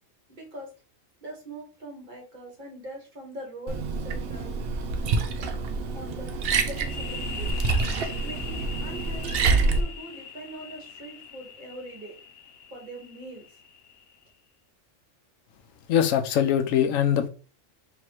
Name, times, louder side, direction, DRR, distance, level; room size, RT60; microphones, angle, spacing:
voice 1, 0.3-0.7 1.2-4.6 5.9-6.3 6.6-7.5 8.2-12.2 12.7-13.5, right 1 dB, 40° right, 1.3 m, -42 dB
Liquid, 3.7-9.8, right 4 dB, 60° right, 0.7 m, -27 dB
sound 1, 6.8-14.2, left 6 dB, 55° left, 0.9 m, -42 dB
voice 2, 15.9-17.3, left 9 dB, 85° left, 1.0 m, -22 dB
3.1 x 2.9 x 4.6 m
omnidirectional pair, 1.3 m